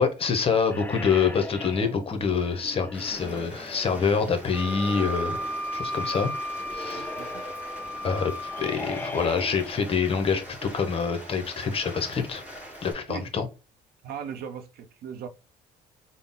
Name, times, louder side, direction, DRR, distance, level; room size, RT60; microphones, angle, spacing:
voice 1, 0.0-5.4 5.7-6.3 6.7-7.1 8.0-12.4 12.8-13.4, left 5 dB, 35° left, 0.8 m, -26 dB
sound 1, 0.7-10.5, left 2 dB, 10° left, 0.3 m, -40 dB
Rain, 2.9-12.9, equal, 10° right, 1.2 m, -44 dB
Wind instrument woodwind instrument, 4.5-8.8, equal, 25° right, 1.2 m, -34 dB
voice 2, 6.9-7.3 13.1-13.3 14.0-15.3, right 7 dB, 65° right, 0.6 m, -38 dB
3.8 x 2.0 x 3.6 m
cardioid pair, 110°, 17 cm